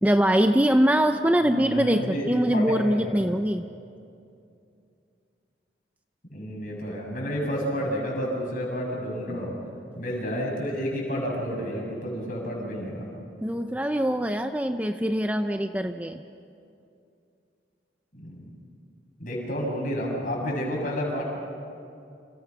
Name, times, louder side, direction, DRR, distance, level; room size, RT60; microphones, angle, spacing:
voice 1, 0.0-3.6 13.4-16.2, equal, 10° right, 7 dB, 0.6 m, -23 dB
voice 2, 1.4-3.2 6.3-9.6 10.0-13.0 18.1-18.4 19.2-21.2, equal, 45° left, -2 dB, 7.8 m, -30 dB
29.5 x 27.5 x 6.1 m, 2.5 s
head